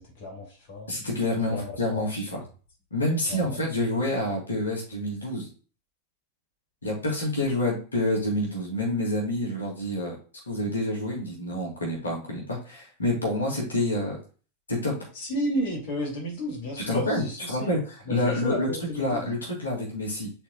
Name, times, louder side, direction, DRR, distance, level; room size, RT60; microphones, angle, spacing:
voice 1, 0.0-0.9 1.5-2.0 3.3-3.6 15.1-17.8 18.1-19.3, equal, 50° left, 0 dB, 2.4 m, -32 dB
voice 2, 0.9-2.4 2.9-5.5 6.8-10.1 10.5-14.2 14.7-15.0 16.9-18.7 19.0-20.3, left 1 dB, 75° left, -2 dB, 2.4 m, -28 dB
9.8 x 4.2 x 2.3 m, 0.37 s
figure-of-eight pair, 90°, 0 cm